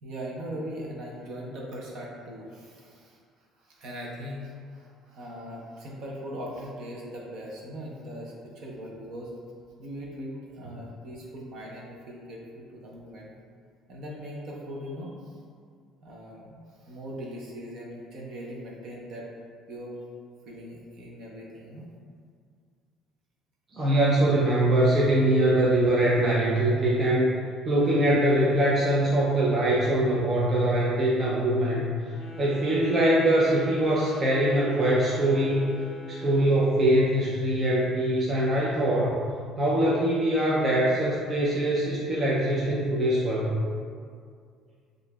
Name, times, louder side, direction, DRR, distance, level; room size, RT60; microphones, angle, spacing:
voice 1, 0.0-3.2 3.6-9.3 9.8-13.3 13.9-15.4 16.0-19.3 19.7-20.0 20.5-21.9, equal, 50° right, -3 dB, 0.7 m, -40 dB
voice 2, 23.7-27.3 27.6-39.1 39.6-43.5, right 1 dB, 25° right, -6 dB, 0.4 m, -23 dB
Wind instrument woodwind instrument, 32.1-36.7, right 2 dB, 35° left, 0.5 m, -43 dB
6.7 x 2.5 x 2.2 m, 2.1 s
cardioid pair, 180°, 0 cm